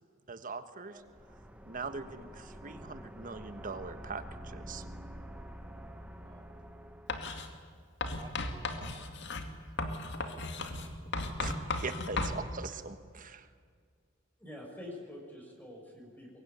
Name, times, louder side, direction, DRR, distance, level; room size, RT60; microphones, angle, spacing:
voice 1, 0.3-1.0 1.6-4.8 11.4-13.5, right 4 dB, 40° right, 10 dB, 1.5 m, -42 dB
voice 2, 0.8-1.2 6.2-6.5 8.2-11.1, right 3 dB, 20° right, 9 dB, 1.1 m, -58 dB
sound 1, 1.0-7.5, equal, 5° right, 1.4 m, -47 dB
Writing, 7.1-7.5 8.0-12.4, left 3 dB, 60° left, 2.3 m, -36 dB
voice 3, 14.4-16.4, left 1 dB, 10° left, 0 dB, 6.2 m, -46 dB
23.5 x 22.5 x 9.5 m, 2.1 s
head